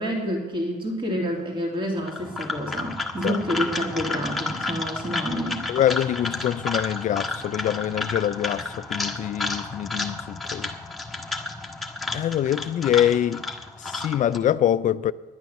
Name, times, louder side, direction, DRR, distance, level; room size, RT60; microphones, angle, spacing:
voice 1, 0.0-5.6, equal, 30° right, 2.8 m, -28 dB
sound 1, 2.0-14.4, left 3 dB, ahead, 1.6 m, -31 dB
voice 2, 5.7-10.7 12.1-13.5 13.8-15.1, left 11 dB, 50° left, 0.4 m, -24 dB
11.0 x 9.2 x 7.1 m
cardioid pair, 110°, 17 cm